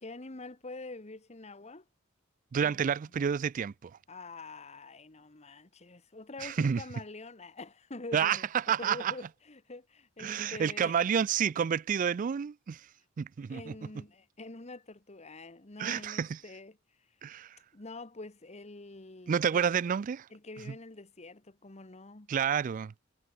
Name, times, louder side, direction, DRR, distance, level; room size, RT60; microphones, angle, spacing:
voice 1, 0.0-1.8 2.6-2.8 4.1-8.4 8.8-11.0 13.5-17.1 17.7-19.6 20.3-22.3, left 2 dB, 30° left, 1.3 m, -46 dB
voice 2, 2.5-3.9 6.4-6.8 8.1-9.1 10.2-12.8 13.2-13.7 15.8-16.4 17.2-17.6 19.3-20.3 20.7-20.8 22.3-22.9, right 7 dB, 40° right, 0.3 m, -29 dB
head